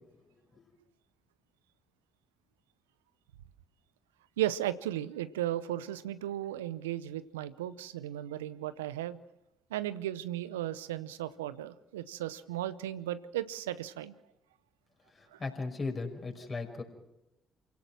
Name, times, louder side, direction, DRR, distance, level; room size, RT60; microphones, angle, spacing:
voice 1, 4.4-9.2 9.7-14.1 15.3-15.4, right 13 dB, 85° right, 16 dB, 0.7 m, -35 dB
voice 2, 15.2-16.8, left 3 dB, 40° left, 4 dB, 5.4 m, -37 dB
28.5 x 17.5 x 6.2 m, 0.91 s
hypercardioid pair, 45°, 0 cm